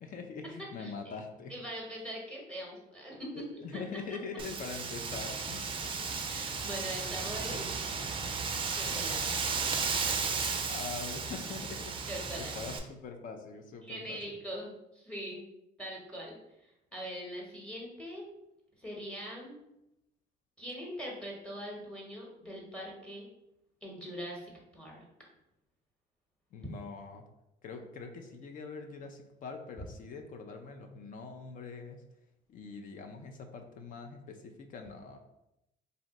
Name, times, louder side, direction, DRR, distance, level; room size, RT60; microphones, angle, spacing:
voice 1, 0.0-1.5 3.3-5.6 6.0-6.1 10.5-12.1 12.4-14.2 26.5-27.2 27.6-32.0 32.5-35.2, left 4 dB, 50° left, 5 dB, 0.4 m, -43 dB
voice 2, 0.8-1.1 1.5-3.4 3.7-3.8 6.3-7.7 8.7-9.4 12.1-12.5 13.8-15.4 15.8-18.3 18.8-19.6 20.6-23.3 23.8-25.1, equal, 5° left, -3 dB, 0.9 m, -42 dB
Wind, 4.4-12.8, right 5 dB, 30° right, 0.4 m, -34 dB
2.6 x 2.0 x 3.9 m, 0.87 s
cardioid pair, 110°, 17 cm